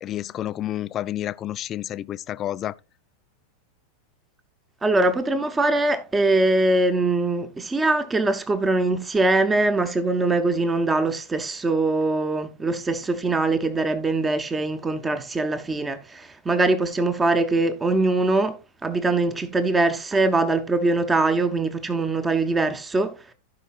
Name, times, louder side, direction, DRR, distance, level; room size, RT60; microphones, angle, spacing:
voice 1, 0.0-2.7, left 12 dB, 30° left, 0.4 m, -30 dB
voice 2, 4.8-23.1, right 2 dB, 15° right, 0.9 m, -22 dB
16.0 x 5.5 x 2.4 m
figure-of-eight pair, 90°, 0 cm